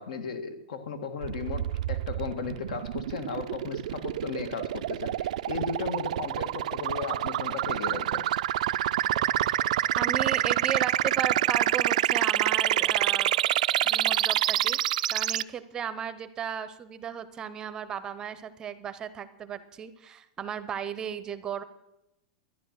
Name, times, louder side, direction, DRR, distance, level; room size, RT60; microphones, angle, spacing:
voice 1, 0.0-1.6 1.9-8.2, left 5 dB, 80° left, 9 dB, 1.6 m, -35 dB
sound 1, 1.2-15.4, right 13 dB, 80° right, 0.4 m, -27 dB
voice 2, 9.9-13.3 13.8-14.8 15.1-21.6, right 8 dB, 20° right, 13 dB, 0.6 m, -35 dB
12.5 x 10.5 x 6.5 m, 0.92 s
supercardioid pair, 160°, 4 cm